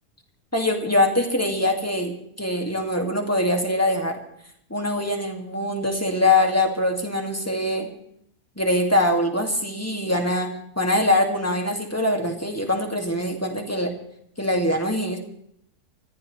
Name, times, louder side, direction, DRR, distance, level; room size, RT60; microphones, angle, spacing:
voice 1, 0.5-4.2 4.7-7.9 8.6-13.9 14.4-15.2, left 1 dB, 10° left, 2 dB, 2.1 m, -23 dB
25.5 x 14.5 x 3.2 m, 0.69 s
omnidirectional pair, 1.6 m